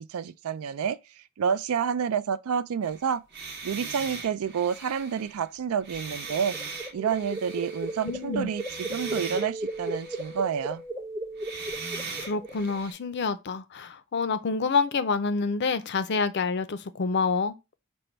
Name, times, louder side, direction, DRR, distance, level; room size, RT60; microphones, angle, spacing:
voice 1, 0.1-1.0 1.4-3.2 3.6-6.6 6.9-10.8, right 7 dB, 80° right, 0.4 m, -29 dB
sound 1, 2.8-8.3 8.5-10.6 11.4-12.9, right 4 dB, 50° right, 0.8 m, -40 dB
sound 2, 6.1-12.8, right 1 dB, 15° right, 0.7 m, -36 dB
voice 2, 8.0-8.5 12.2-17.5, left 4 dB, 50° left, 0.5 m, -27 dB
5.2 x 2.2 x 4.4 m
head